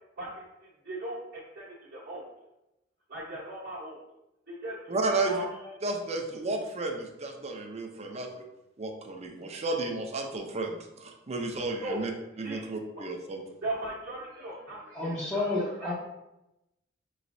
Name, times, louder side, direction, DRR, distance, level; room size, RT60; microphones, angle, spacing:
voice 1, 0.8-2.2 3.1-4.0 4.5-5.7 11.8-12.0 12.4-12.6 13.6-15.4 15.8-15.9, right 1 dB, 50° right, -7 dB, 1.0 m, -38 dB
voice 2, 4.9-5.5 5.8-8.4 8.8-12.1 12.4-13.4, right 2 dB, 35° right, 3 dB, 0.6 m, -32 dB
voice 3, 14.9-15.9, left 2 dB, 15° left, -7 dB, 0.7 m, -31 dB
5.6 x 3.1 x 2.6 m, 0.93 s
head